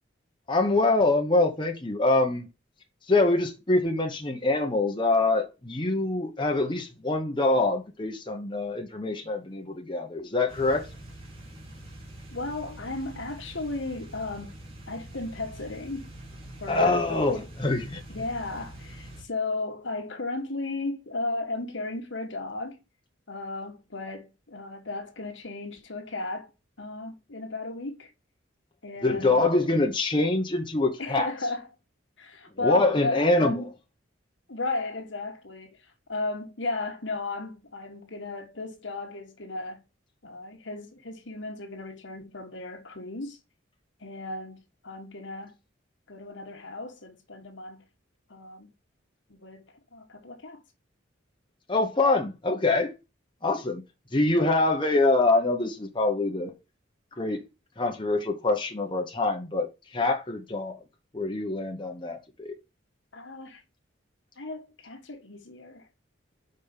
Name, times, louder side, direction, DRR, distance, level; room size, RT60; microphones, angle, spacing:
voice 1, 0.5-2.5 3.1-10.9 16.7-18.0 29.0-31.3 32.6-33.5 51.7-52.9 53.4-53.8 54.1-56.5 57.2-57.4 57.8-59.7 59.9-60.7 61.1-62.5, left 2 dB, 25° left, 1.0 m, -25 dB
sound 1, 10.5-19.2, right 1 dB, 30° right, 3.1 m, -45 dB
voice 2, 12.3-14.6 14.9-16.1 16.6-17.5 18.1-22.8 23.3-26.5 26.8-28.1 28.8-29.5 31.0-31.7 32.2-33.7 34.5-39.8 40.2-43.4 44.0-45.6 46.1-47.8 48.3-48.7 49.3-50.6 63.1-63.6 64.4-65.9, left 2 dB, 70° left, 1.5 m, -35 dB
5.3 x 5.2 x 5.7 m
head